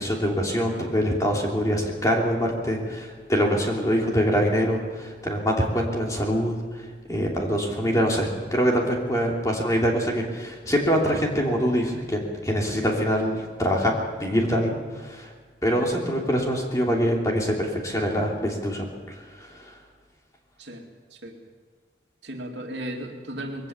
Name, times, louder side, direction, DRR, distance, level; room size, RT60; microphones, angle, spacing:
voice 1, 0.0-6.6 7.1-15.3 15.6-19.7, equal, 20° left, -1 dB, 3.0 m, -24 dB
voice 2, 22.2-23.7, right 1 dB, 70° right, 2 dB, 2.7 m, -35 dB
21.5 x 17.0 x 7.1 m, 1.5 s
head